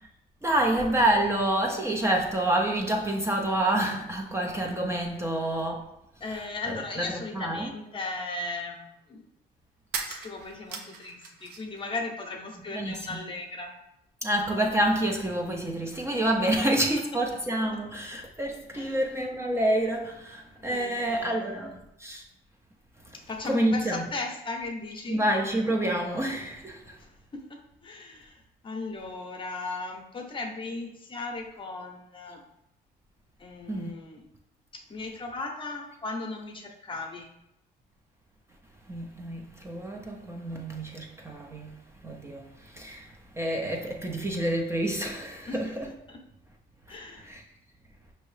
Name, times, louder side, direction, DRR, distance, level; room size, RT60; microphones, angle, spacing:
voice 1, 0.4-5.9 6.3-7.7 12.7-13.2 14.2-22.2 23.5-24.1 25.1-27.0 33.7-33.9 38.9-41.7 42.0-42.4 42.7-43.1 43.4-45.9 47.2-47.4, right 1 dB, 15° right, 0.4 m, -28 dB
voice 2, 6.2-9.2 10.1-13.7 18.7-19.0 20.7-21.7 23.3-25.2 27.0-27.4 27.8-32.4 33.4-34.2 34.7-37.3 45.5-45.6 46.1-46.2 46.9-47.3, left 3 dB, 30° left, 0.7 m, -37 dB
sound 1, 9.9-11.8 12.1-13.0, right 5 dB, 75° right, 0.7 m, -39 dB
5.4 x 2.7 x 3.2 m
cardioid pair, 110°, 17 cm